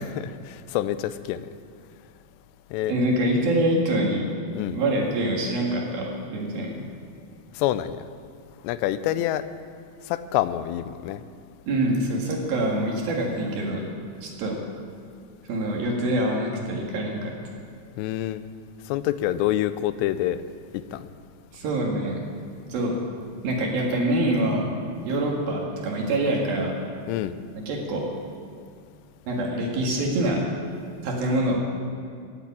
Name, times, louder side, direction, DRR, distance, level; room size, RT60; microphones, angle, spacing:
voice 1, 0.0-1.5 2.7-2.9 4.5-4.8 7.6-8.0 8.6-9.4 10.1-11.2 18.0-18.4 18.9-20.4 20.9-21.1 27.1-27.3, left 13 dB, 85° left, 13 dB, 2.7 m, -27 dB
voice 2, 2.9-4.2 4.7-6.8 11.7-13.8 14.2-14.6 15.5-17.3 21.5-22.2 22.7-23.0 23.4-24.7 25.1-26.7 27.7-28.1 29.3-30.4 31.0-31.6, right 1 dB, 60° right, -1 dB, 3.5 m, -25 dB
16.0 x 8.4 x 8.7 m, 2.2 s
omnidirectional pair, 5.0 m